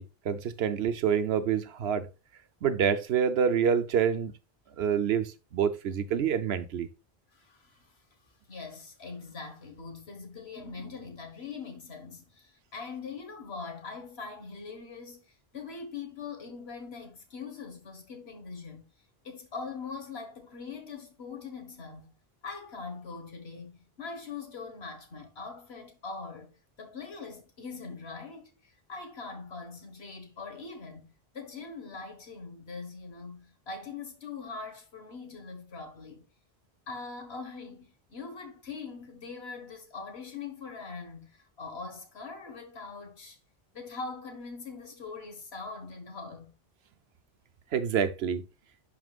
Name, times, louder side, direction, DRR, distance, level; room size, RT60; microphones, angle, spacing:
voice 1, 0.0-2.1 2.6-4.3 4.8-6.9 47.7-48.4, right 7 dB, 85° right, 1.0 m, -27 dB
voice 2, 7.3-8.0 8.5-18.8 19.2-22.1 22.4-36.3 36.9-43.4 43.7-46.5, left 4 dB, 85° left, 1.8 m, -42 dB
11.0 x 4.5 x 2.4 m
omnidirectional pair, 1.0 m